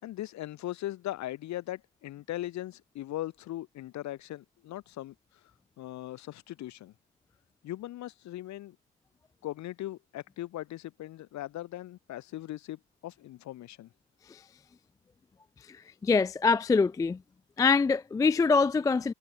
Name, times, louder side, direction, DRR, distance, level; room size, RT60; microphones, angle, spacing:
voice 1, 0.0-5.1 5.8-6.9 7.6-8.8 9.4-13.9, left 14 dB, 50° left, 7.0 m, -39 dB
voice 2, 16.0-17.2 17.6-19.1, left 4 dB, 10° left, 0.4 m, -24 dB
hypercardioid pair, 90°, 35 cm